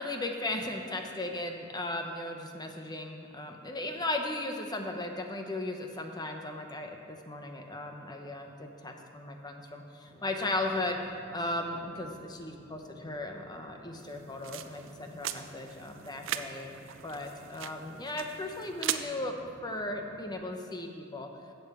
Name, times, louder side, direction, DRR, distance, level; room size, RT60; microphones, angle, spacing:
voice 1, 0.0-11.0 11.3-16.7 17.0-21.3, left 2 dB, 20° left, 3 dB, 0.9 m, -36 dB
sound 1, 10.0-20.3, equal, 5° right, 3.0 m, -54 dB
sound 2, 14.0-19.0, right 11 dB, 65° right, 0.5 m, -39 dB
8.4 x 7.9 x 6.8 m, 2.3 s
head